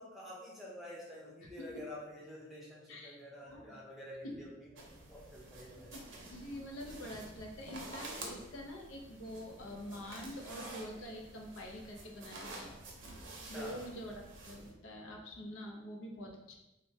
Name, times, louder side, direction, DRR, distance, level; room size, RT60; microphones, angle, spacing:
voice 1, 0.0-6.0 13.4-13.8, left 1 dB, ahead, -6 dB, 0.6 m, -49 dB
voice 2, 2.9-3.8 4.2-4.4 5.8-12.8 13.5-16.5, equal, 85° left, 1 dB, 0.5 m, -46 dB
sound 1, 4.8-14.7, right 2 dB, 75° right, 0.6 m, -49 dB
3.1 x 2.1 x 2.6 m, 0.96 s
head